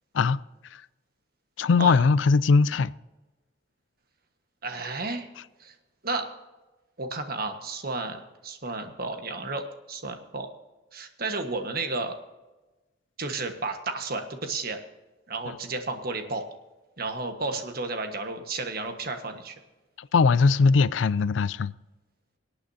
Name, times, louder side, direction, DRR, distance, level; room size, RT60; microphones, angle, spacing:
voice 1, 1.6-2.9 15.5-15.6 20.0-21.7, left 4 dB, 80° left, 0.4 m, -21 dB
voice 2, 4.6-5.3 5.6-5.7 6.0-6.3 7.0-10.5 10.9-12.1 13.2-14.8 15.3-16.4 17.0-19.6, right 3 dB, 50° right, 1.5 m, -32 dB
25.0 x 8.8 x 2.8 m
head